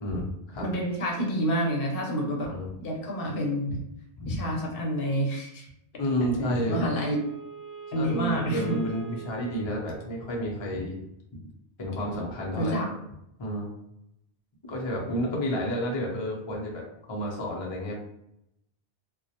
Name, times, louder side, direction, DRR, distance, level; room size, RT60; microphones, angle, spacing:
voice 1, 0.0-0.7 2.5-2.7 3.7-3.8 4.2-4.4 6.0-6.9 7.9-11.0 11.3-11.4 11.8-12.8 13.4-13.7 14.7-18.0, equal, 45° left, -2 dB, 0.3 m, -30 dB
voice 2, 0.6-2.5 2.8-3.8 4.3-5.7 6.4-7.2 7.9-8.8 12.6-12.9, equal, 60° left, -1 dB, 0.8 m, -28 dB
Wind instrument woodwind instrument, 6.1-10.6, right 7 dB, 70° right, 1.1 m, -44 dB
2.2 x 2.0 x 2.7 m, 0.79 s
omnidirectional pair, 1.1 m